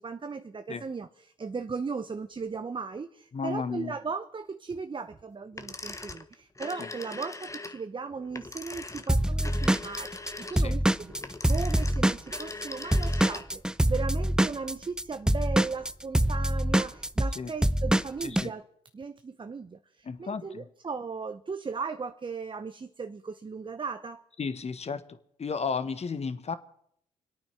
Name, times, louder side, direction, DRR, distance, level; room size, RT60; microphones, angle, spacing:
voice 1, 0.0-10.1 10.4-13.6 13.9-18.7 18.9-24.2, right 5 dB, 30° right, 9 dB, 0.9 m, -37 dB
voice 2, 3.3-3.9 6.8-6.9 10.5-10.7 17.3-17.5 18.2-18.5 20.0-20.7 24.4-25.0 25.4-26.6, left 5 dB, 40° left, 13 dB, 1.4 m, -33 dB
sound 1, 5.5-13.7, left 3 dB, 20° left, 1.4 m, -41 dB
Drum kit / Drum, 9.1-12.7 12.9-18.5, right 1 dB, 5° right, 0.6 m, -25 dB
26.0 x 8.9 x 6.0 m, 0.70 s
hypercardioid pair, 50°, 16 cm